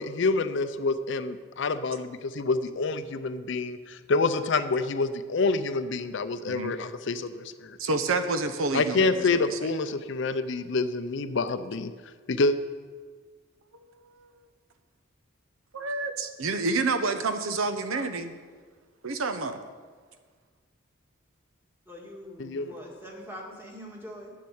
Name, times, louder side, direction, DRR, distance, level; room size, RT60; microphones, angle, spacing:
voice 1, 0.0-7.8 8.7-11.9 12.3-12.6 22.4-22.7, left 3 dB, 60° left, 11 dB, 0.5 m, -27 dB
voice 2, 7.8-9.6 15.7-18.3 19.0-19.6, right 3 dB, 80° right, 8 dB, 0.8 m, -29 dB
voice 3, 21.9-24.3, equal, 10° right, -1 dB, 1.8 m, -43 dB
9.5 x 7.6 x 7.1 m, 1.5 s
head